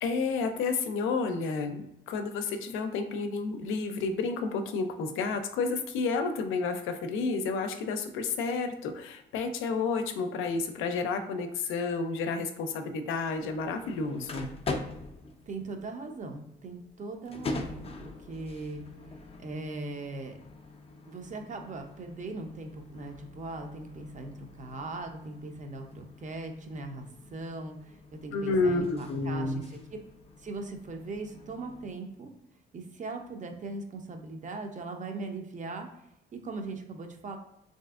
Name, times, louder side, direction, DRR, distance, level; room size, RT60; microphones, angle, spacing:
voice 1, 0.0-14.5 28.3-29.6, left 4 dB, 90° left, 7 dB, 0.4 m, -30 dB
sound 1, 13.3-31.9, left 3 dB, 30° left, 0.4 m, -44 dB
voice 2, 15.5-18.8 19.4-20.4 21.1-30.0 30.4-32.3 32.7-36.0 36.3-37.4, right 3 dB, 40° right, 4 dB, 0.5 m, -40 dB
3.3 x 2.6 x 2.3 m, 0.83 s
cardioid pair, 90°, 20 cm